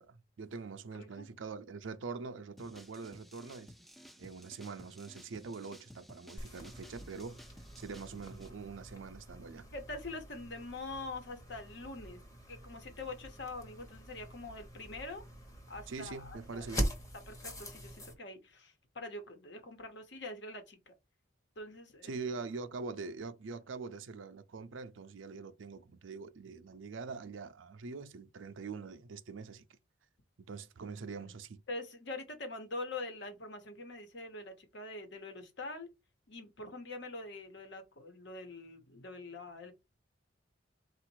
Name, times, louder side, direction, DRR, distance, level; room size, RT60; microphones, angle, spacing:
voice 1, 0.0-3.7 4.2-7.4 7.8-9.7 15.9-16.9 22.0-29.7 30.5-31.6, right 4 dB, 80° right, 0.5 m, -44 dB
voice 2, 0.9-1.3 9.7-12.2 12.5-15.2 15.7-16.7 17.3-20.9 21.6-22.1 31.2-31.3 31.7-35.9 36.3-39.7, left 2 dB, 65° left, 1.1 m, -44 dB
sound 1, 2.6-8.5, equal, ahead, 0.3 m, -56 dB
sound 2, 6.4-18.1, equal, 20° left, 1.0 m, -43 dB
4.0 x 2.5 x 4.6 m
head